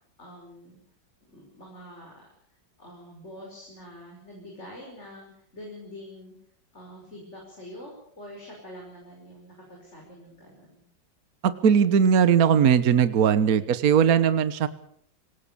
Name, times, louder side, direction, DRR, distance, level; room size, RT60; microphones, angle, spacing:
voice 1, 0.2-0.8 1.3-2.2 2.8-6.4 6.7-10.9, left 1 dB, 35° left, -1 dB, 6.0 m, -45 dB
voice 2, 11.4-14.7, right 7 dB, 55° right, 13 dB, 1.5 m, -19 dB
26.0 x 18.5 x 7.0 m, 0.66 s
omnidirectional pair, 2.1 m